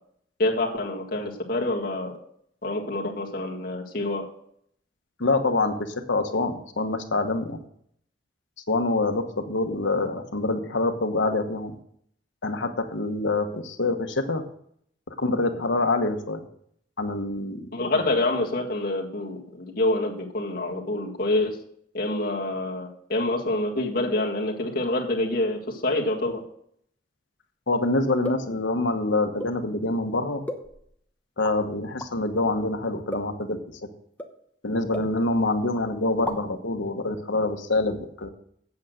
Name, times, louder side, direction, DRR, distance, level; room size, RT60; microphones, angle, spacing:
voice 1, 0.4-2.1 2.6-4.2 17.7-21.6 21.9-26.4, left 2 dB, 50° left, -1 dB, 1.8 m, -26 dB
voice 2, 5.2-7.6 8.7-11.7 12.4-14.4 15.1-16.4 17.0-18.0 27.7-30.4 31.4-33.6 34.6-38.3, left 2 dB, 85° left, 6 dB, 1.2 m, -26 dB
sound 1, 28.2-28.6 29.4-29.6 30.5-31.0 31.4-31.6 32.0-32.1 33.1-33.4 34.2-34.4 34.9-35.5 35.8-35.9 36.1-36.6, left 1 dB, 10° left, 0.9 m, -35 dB
8.4 x 7.8 x 6.4 m, 0.68 s
head